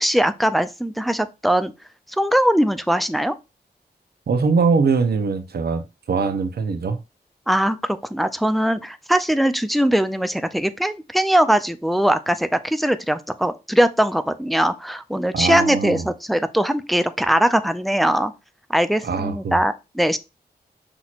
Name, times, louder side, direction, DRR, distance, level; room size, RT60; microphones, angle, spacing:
voice 1, 0.0-1.7 2.2-3.3 7.5-7.8 8.1-18.3 18.7-20.2, equal, ahead, 0.3 m, -20 dB
voice 2, 4.3-7.0 15.3-16.1 19.0-19.6, right 4 dB, 70° right, 0.7 m, -22 dB
6.0 x 2.9 x 2.4 m
wide cardioid pair, 95°, 17 cm